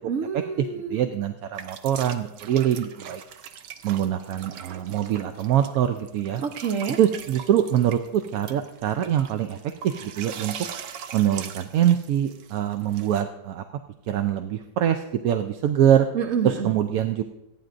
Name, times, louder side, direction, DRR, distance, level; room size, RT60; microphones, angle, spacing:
voice 1, 0.1-1.0 6.4-7.0 16.1-16.7, right 6 dB, 50° right, 4 dB, 1.3 m, -27 dB
voice 2, 0.6-3.2 3.8-6.4 7.0-9.6 9.8-10.5 11.1-13.6 14.1-16.1 16.4-17.2, right 10 dB, 70° right, 7 dB, 0.9 m, -24 dB
sound 1, 1.6-13.2, right 8 dB, 90° right, 1.4 m, -41 dB
26.5 x 9.3 x 2.5 m, 0.95 s
omnidirectional pair, 1.8 m